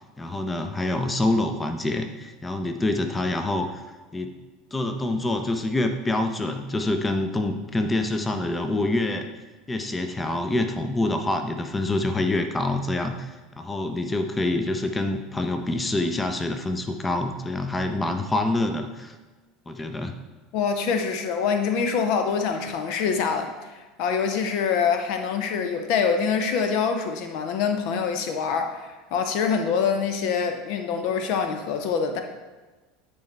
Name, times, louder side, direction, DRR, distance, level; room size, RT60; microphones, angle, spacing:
voice 1, 0.2-3.8 4.1-4.3 4.7-9.3 9.7-19.1 19.7-20.2, left 2 dB, 15° left, 6 dB, 0.7 m, -26 dB
voice 2, 20.5-32.2, left 6 dB, 55° left, 6 dB, 0.7 m, -25 dB
10.0 x 4.6 x 3.3 m, 1.2 s
figure-of-eight pair, 75°, 0 cm